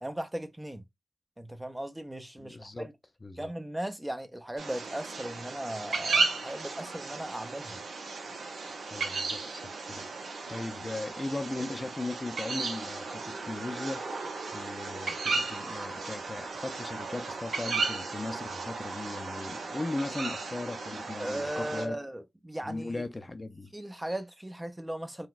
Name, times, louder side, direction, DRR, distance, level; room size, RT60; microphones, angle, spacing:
voice 1, 0.0-0.8 1.4-2.9 3.4-7.8 21.2-23.0 23.7-25.3, right 1 dB, 15° right, 0.6 m, -37 dB
voice 2, 2.4-2.9 3.2-3.5 8.9-10.1 10.5-14.1 14.5-22.0 22.6-23.7, left 2 dB, 35° left, 0.5 m, -38 dB
sound 1, 4.6-21.9, right 3 dB, 80° right, 0.7 m, -35 dB
3.9 x 2.2 x 2.3 m
cardioid pair, 40°, 0 cm